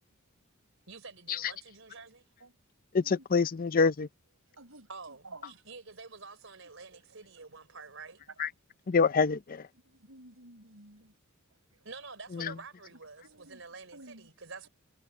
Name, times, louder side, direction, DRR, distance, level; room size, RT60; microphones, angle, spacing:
voice 1, 0.9-2.3 4.9-8.2 11.8-14.7, right 4 dB, 65° right, 4.7 m, -48 dB
voice 2, 2.9-4.1 8.4-8.5 8.9-9.6 12.4-12.5, left 5 dB, 45° left, 0.5 m, -26 dB
voice 3, 4.5-5.6 6.9-7.4 7.7-7.8 9.7-11.1 11.7-11.9 13.2-13.6 13.9-14.3, right 2 dB, 85° right, 5.8 m, -53 dB
head